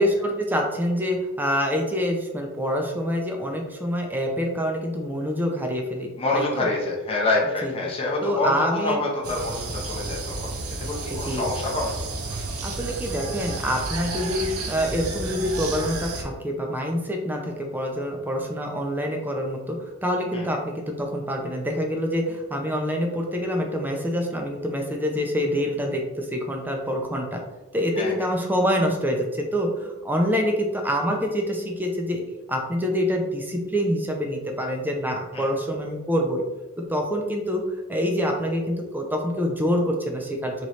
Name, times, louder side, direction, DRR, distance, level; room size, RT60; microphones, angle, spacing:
voice 1, 0.0-6.7 7.6-7.7 8.2-9.0 11.1-11.5 12.6-27.4 27.7-32.2 32.5-36.4 36.9-37.6 37.9-40.7, equal, 10° right, 2 dB, 0.5 m, -26 dB
voice 2, 6.2-10.5 10.8-11.9 12.3-12.6 20.3-20.5 28.0-28.1 35.3-35.5, left 2 dB, 25° left, -3 dB, 0.7 m, -27 dB
sound 1, 9.2-16.2, right 3 dB, 70° right, 0.7 m, -32 dB
3.1 x 3.0 x 4.0 m, 1.1 s
head